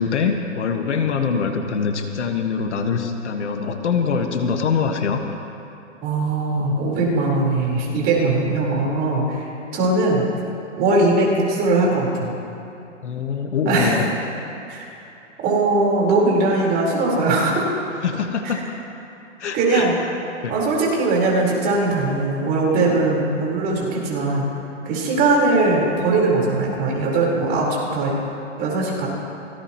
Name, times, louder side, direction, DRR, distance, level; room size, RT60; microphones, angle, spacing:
voice 1, 0.0-5.2 13.0-14.1 18.0-18.6 19.4-20.2 20.4-20.6, left 5 dB, 65° left, 5 dB, 1.6 m, -23 dB
voice 2, 6.0-10.2 10.8-12.3 13.6-14.0 14.7-14.9 15.4-17.6 18.4-18.5 19.5-20.0 20.5-24.5 24.9-28.1 28.6-29.1, right 2 dB, 25° right, -3 dB, 4.3 m, -20 dB
24.5 x 18.0 x 3.1 m, 2.8 s
hypercardioid pair, 140°, 37 cm